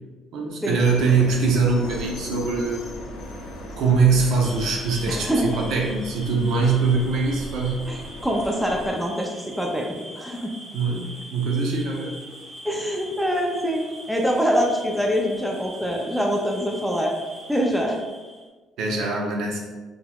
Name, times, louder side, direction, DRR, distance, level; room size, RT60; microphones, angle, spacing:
voice 1, 0.3-2.9 3.8-7.8 10.7-12.1 18.8-19.6, right 4 dB, 70° right, 0 dB, 0.7 m, -22 dB
sound 1, 0.8-8.9, left 1 dB, 75° left, 0.6 m, -37 dB
sound 2, 4.4-18.5, equal, 25° right, 1.0 m, -42 dB
voice 2, 5.1-5.6 7.9-10.5 12.6-13.8 14.1-17.1 17.5-18.0, equal, ahead, 0 dB, 0.4 m, -24 dB
3.8 x 2.9 x 2.2 m, 1.3 s
cardioid pair, 150°, 0 cm